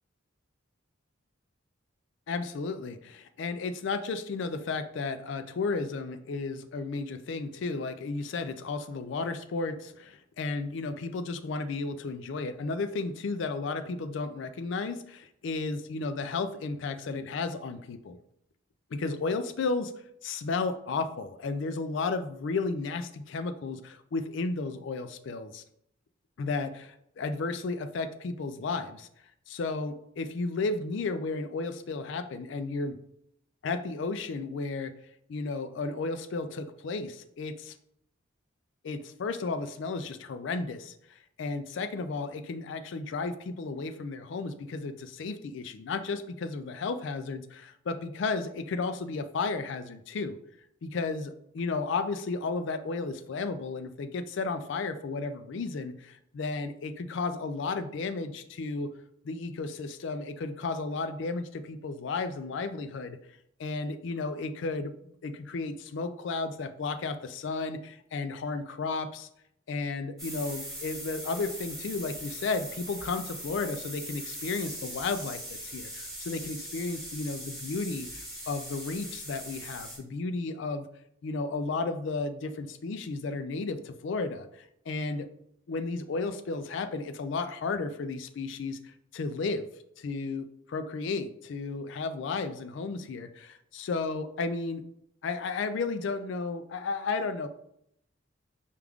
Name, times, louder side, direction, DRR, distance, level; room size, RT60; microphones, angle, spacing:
voice 1, 2.3-18.2 18.9-19.9 20.2-25.6 26.4-29.1 29.5-33.0 33.6-34.9 35.3-37.8 38.8-50.4 50.8-58.9 59.2-63.2 63.6-69.3 69.7-80.9 81.2-85.3 85.7-89.7 90.0-94.8 95.2-97.5, left 3 dB, 65° left, 10 dB, 0.3 m, -33 dB
sound 1, 70.2-80.0, equal, ahead, 1.2 m, -40 dB
4.8 x 2.3 x 3.5 m, 0.74 s
head